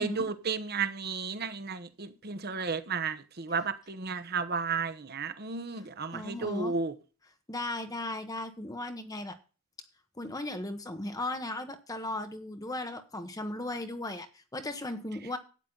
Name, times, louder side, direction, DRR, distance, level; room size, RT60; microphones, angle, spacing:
voice 1, 0.0-6.9, right 5 dB, 45° right, 1.1 m, -33 dB
voice 2, 6.1-6.7 7.5-9.4 10.2-15.4, left 1 dB, 15° left, 1.0 m, -36 dB
12.0 x 9.3 x 3.9 m
head